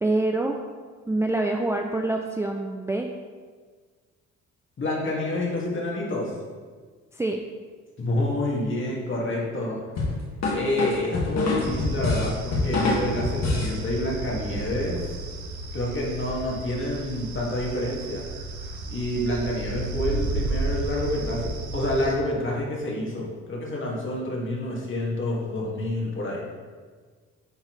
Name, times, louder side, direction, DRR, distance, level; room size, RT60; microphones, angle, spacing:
voice 1, 0.0-0.6 1.1-3.1 7.1-7.4, right 2 dB, 10° right, 2 dB, 0.4 m, -25 dB
voice 2, 4.8-6.3 8.0-9.8 10.5-15.0 15.7-18.2 18.9-26.4, left 1 dB, 40° left, -3 dB, 2.0 m, -28 dB
sound 1, 10.0-13.8, left 3 dB, 60° left, 1.8 m, -25 dB
sound 2, 11.6-22.2, right 3 dB, 75° right, 1.0 m, -33 dB
9.8 x 4.1 x 3.2 m, 1.5 s
cardioid pair, 90°, 30 cm